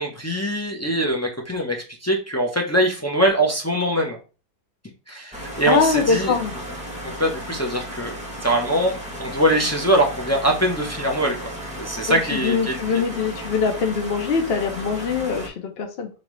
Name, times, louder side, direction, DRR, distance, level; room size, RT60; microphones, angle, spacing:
voice 1, 0.0-4.2 5.1-6.3 7.2-8.1 8.4-8.9 9.2-11.3 11.8-12.7, right 1 dB, 25° left, 0 dB, 0.3 m, -22 dB
sound 1, 5.3-15.5, equal, 5° right, 0.8 m, -34 dB
voice 2, 5.7-6.5 12.1-16.1, left 5 dB, 50° left, 4 dB, 0.8 m, -23 dB
5.1 x 2.8 x 3.1 m, 0.34 s
omnidirectional pair, 1.6 m